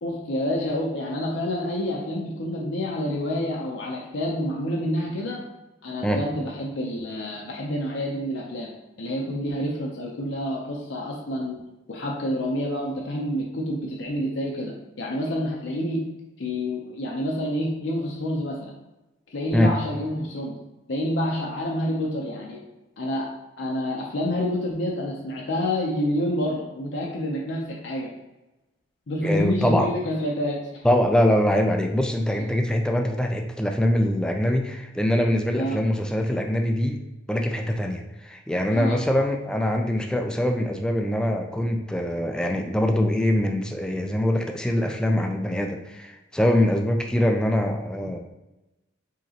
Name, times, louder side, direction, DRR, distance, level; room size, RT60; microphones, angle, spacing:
voice 1, 0.0-5.4 5.8-8.7 9.0-11.6 11.9-16.0 16.4-18.7 19.3-20.5 20.9-22.6 23.0-23.3 23.6-28.1 29.1-30.8 32.3-32.4 35.5-35.8 38.7-39.0, left 1 dB, 70° left, -2 dB, 0.6 m, -28 dB
voice 2, 29.2-29.9 30.8-37.0 37.3-48.2, left 1 dB, 5° left, 3 dB, 0.3 m, -23 dB
5.0 x 2.9 x 2.8 m, 1.0 s
head